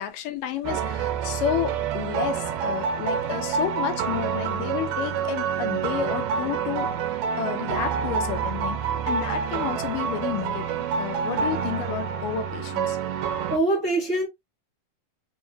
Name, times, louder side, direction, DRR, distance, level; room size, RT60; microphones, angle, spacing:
voice 1, 0.0-13.0, left 9 dB, 80° left, 2.3 m, -31 dB
sound 1, 0.6-13.6, right 7 dB, 85° right, 2.3 m, -28 dB
voice 2, 13.5-14.3, right 2 dB, 40° right, 1.1 m, -24 dB
5.6 x 2.9 x 2.2 m
omnidirectional pair, 3.8 m